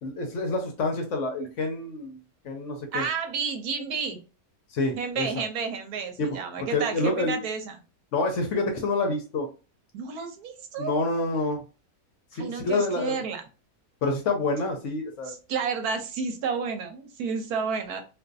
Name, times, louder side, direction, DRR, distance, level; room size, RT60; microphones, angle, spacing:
voice 1, 0.0-3.1 4.7-5.4 6.2-7.4 8.1-9.5 10.8-11.6 12.3-13.2 14.0-15.3, left 2 dB, 65° left, 3 dB, 0.8 m, -28 dB
voice 2, 2.9-4.2 5.0-7.8 9.9-10.9 12.3-13.4 15.3-18.0, right 5 dB, 85° right, 6 dB, 1.1 m, -31 dB
2.5 x 2.5 x 2.2 m, 0.33 s
omnidirectional pair, 1.6 m